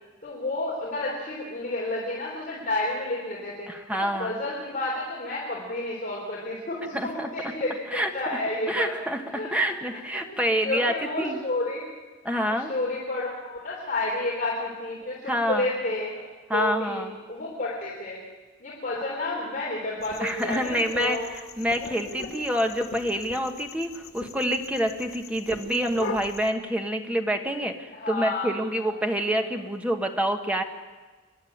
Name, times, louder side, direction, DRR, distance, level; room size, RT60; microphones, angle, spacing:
voice 1, 0.2-3.7 4.2-8.9 9.3-9.7 10.1-11.8 12.3-16.2 16.5-18.2 18.6-21.3 21.8-21.9 27.9-28.5 28.8-29.0 29.3-29.4, left 2 dB, 40° left, -5 dB, 3.6 m, -31 dB
voice 2, 3.7-4.4 6.9-7.5 7.9-8.1 8.7-9.2 9.5-11.4 12.2-12.7 15.3-15.7 16.5-17.1 20.2-30.6, equal, 5° right, 4 dB, 1.3 m, -27 dB
sound 1, 20.0-26.5, left 3 dB, 90° left, 1.7 m, -41 dB
26.5 x 11.0 x 8.7 m, 1.3 s
head